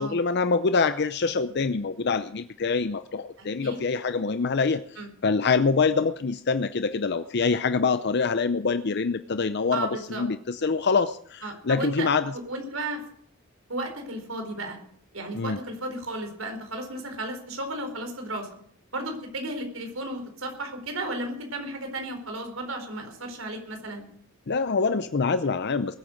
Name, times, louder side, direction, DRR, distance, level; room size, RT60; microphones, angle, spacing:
voice 1, 0.0-12.3 15.3-15.6 24.5-26.0, left 4 dB, 55° left, 11 dB, 0.6 m, -25 dB
voice 2, 3.4-3.8 5.0-5.1 9.7-10.2 11.4-12.1 12.3-13.0 13.7-14.8 15.1-18.5 18.9-24.0, right 1 dB, 80° right, 5 dB, 4.3 m, -34 dB
20.5 x 8.9 x 6.5 m, 0.62 s
head